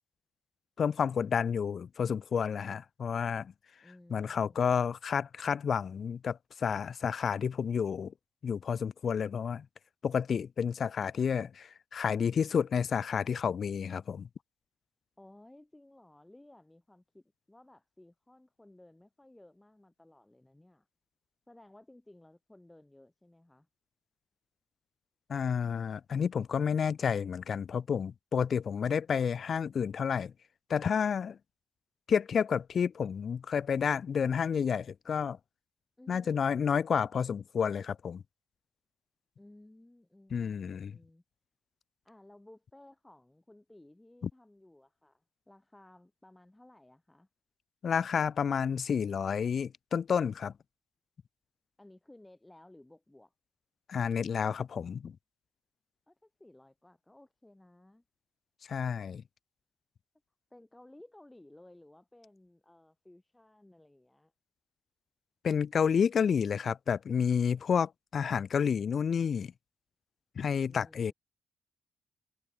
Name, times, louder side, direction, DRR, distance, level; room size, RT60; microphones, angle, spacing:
voice 1, 0.8-3.5 4.1-8.1 8.4-9.7 10.0-14.3 25.3-30.3 30.7-31.4 32.1-35.4 36.1-38.2 40.3-40.9 47.8-50.5 53.9-55.2 58.7-59.2 65.4-69.5 70.4-71.1, left 7 dB, 50° left, 0.3 m, -30 dB
voice 2, 3.8-4.7 15.2-20.9 21.5-23.7 36.0-36.4 39.4-41.2 42.0-47.3 51.8-53.3 56.1-58.0 60.5-64.3 70.7-71.1, left 1 dB, 10° left, 7.5 m, -57 dB
cardioid pair, 90°, 0 cm